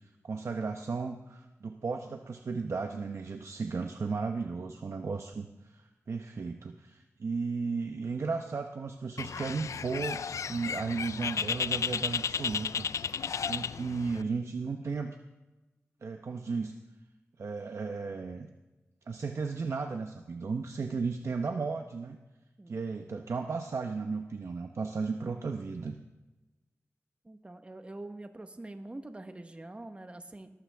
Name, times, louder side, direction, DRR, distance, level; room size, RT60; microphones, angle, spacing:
voice 1, 0.0-15.2 16.0-16.8 17.4-18.5 19.1-22.2 22.7-26.0, right 4 dB, 65° right, 5 dB, 0.8 m, -35 dB
Bird, 9.2-14.2, left 7 dB, 90° left, 0.3 m, -33 dB
voice 2, 27.2-30.5, right 2 dB, 25° right, 7 dB, 1.2 m, -45 dB
20.5 x 14.0 x 3.5 m, 1.1 s
wide cardioid pair, 100°, 5 cm